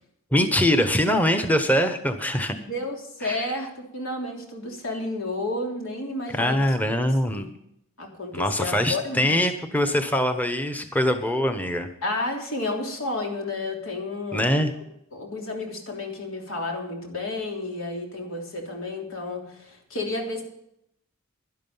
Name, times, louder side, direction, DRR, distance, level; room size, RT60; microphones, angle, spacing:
voice 1, 0.3-2.5 3.2-3.4 6.3-7.5 8.3-11.9 14.3-14.7, left 1 dB, 10° left, 7 dB, 0.9 m, -23 dB
voice 2, 2.5-6.7 7.3-7.5 8.0-9.4 12.0-14.5 15.1-20.4, left 2 dB, 85° left, 1 dB, 3.2 m, -31 dB
11.5 x 11.5 x 5.5 m, 0.75 s
head